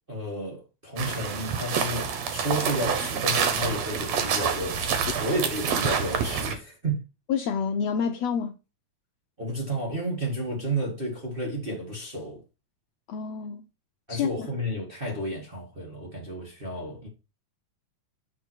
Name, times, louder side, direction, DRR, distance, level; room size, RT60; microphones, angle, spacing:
voice 1, 0.1-7.0 9.4-12.4 14.1-17.1, right 1 dB, 25° right, 1.3 m, -32 dB
sound 1, 1.0-6.5, right 6 dB, 65° right, 2.2 m, -27 dB
voice 2, 7.3-8.5 13.1-13.6 14.1-14.5, left 7 dB, 75° left, 1.6 m, -28 dB
7.8 x 4.4 x 4.5 m
omnidirectional pair, 3.5 m